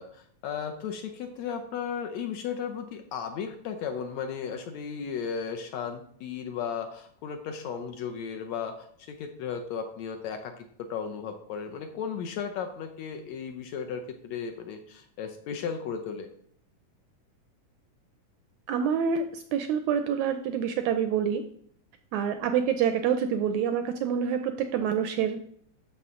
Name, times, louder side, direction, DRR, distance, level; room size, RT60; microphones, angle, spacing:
voice 1, 0.0-16.3, left 7 dB, 75° left, 5 dB, 1.7 m, -35 dB
voice 2, 18.7-21.4 22.1-25.4, right 7 dB, 80° right, 8 dB, 1.7 m, -27 dB
13.0 x 5.7 x 3.7 m, 0.65 s
omnidirectional pair, 3.8 m